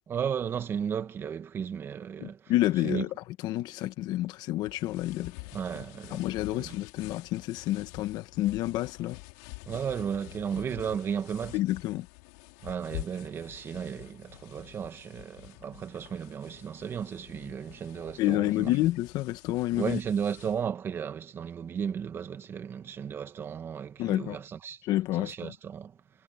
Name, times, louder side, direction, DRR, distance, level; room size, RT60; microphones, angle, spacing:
voice 1, 0.1-2.5 2.8-3.0 5.5-6.2 6.5-6.7 9.7-11.6 12.6-18.7 19.7-24.8 25.2-26.0, right 7 dB, 25° right, 1.9 m, -34 dB
voice 2, 2.2-3.1 3.4-5.5 6.1-9.2 11.5-12.1 18.2-20.0 24.0-24.4 24.8-25.5, left 16 dB, 55° left, 1.5 m, -29 dB
sound 1, 4.6-20.6, left 28 dB, 85° left, 5.2 m, -47 dB
cardioid pair, 150°, 9 cm